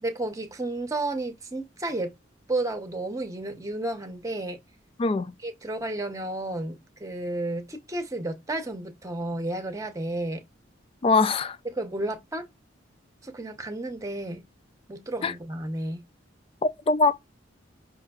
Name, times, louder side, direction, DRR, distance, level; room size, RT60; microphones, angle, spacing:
voice 1, 0.0-2.1 2.5-4.6 5.4-10.5 11.6-12.5 13.2-14.4 14.9-16.1, right 2 dB, 15° right, 0.8 m, -32 dB
voice 2, 5.0-5.3 11.0-11.6 15.2-15.3 16.6-17.2, left 3 dB, 30° left, 0.3 m, -22 dB
5.5 x 2.5 x 2.3 m
head